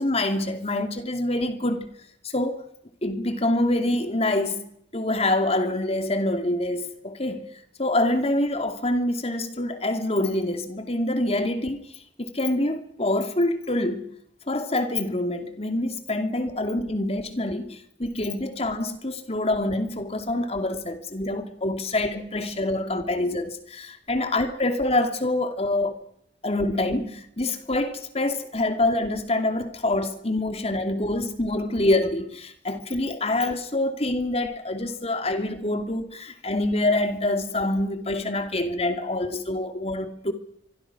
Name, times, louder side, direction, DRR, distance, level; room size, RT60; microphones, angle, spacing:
voice 1, 0.0-1.9 2.2-2.6 3.0-4.7 4.9-7.4 7.8-11.9 12.2-14.1 14.5-25.9 26.4-40.3, left 1 dB, 35° left, 2.7 m, -26 dB
24.5 x 24.5 x 6.1 m
head